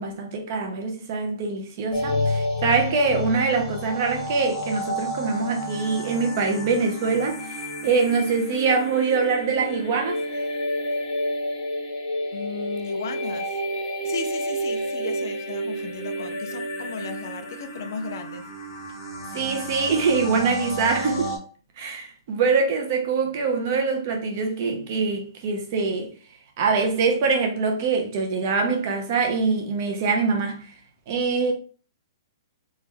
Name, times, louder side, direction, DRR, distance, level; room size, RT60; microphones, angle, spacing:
voice 1, 0.0-10.4 19.3-21.4 21.8-26.1 26.6-30.7 31.1-31.5, right 4 dB, 30° right, 0.7 m, -24 dB
sound 1, 1.9-21.4, equal, 15° left, 1.0 m, -30 dB
voice 2, 12.3-13.5 14.0-18.5, left 5 dB, 45° left, 0.4 m, -35 dB
3.4 x 3.1 x 3.4 m
hypercardioid pair, 180°, 2 cm